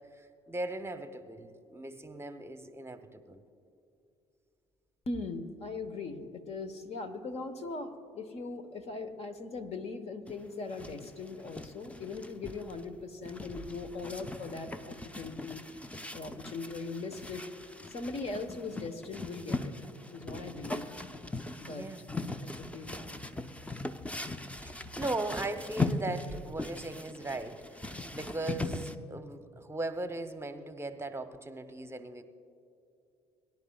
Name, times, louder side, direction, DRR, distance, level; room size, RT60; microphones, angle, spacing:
voice 1, 0.0-3.4 21.7-22.0 24.6-32.2, right 2 dB, 20° right, 10 dB, 0.9 m, -38 dB
voice 2, 5.1-15.6 16.1-17.4 17.9-19.7 20.1-21.1 21.6-21.9 22.4-23.2, left 3 dB, 50° left, 8 dB, 1.2 m, -40 dB
sound 1, 10.3-29.0, left 2 dB, 10° left, 0.7 m, -39 dB
22.5 x 10.5 x 2.4 m, 2.6 s
hypercardioid pair, 55°, 14 cm